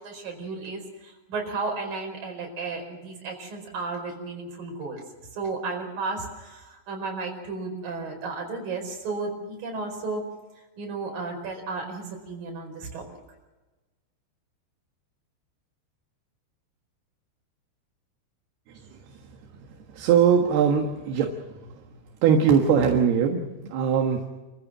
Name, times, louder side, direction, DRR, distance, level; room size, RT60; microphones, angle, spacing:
voice 1, 0.0-5.0 5.4-10.2 10.8-13.0, right 3 dB, 50° right, 2 dB, 6.3 m, -33 dB
voice 2, 19.9-21.3 22.2-24.3, right 7 dB, 65° right, 3 dB, 3.2 m, -21 dB
28.5 x 15.0 x 7.5 m, 1.2 s
omnidirectional pair, 5.5 m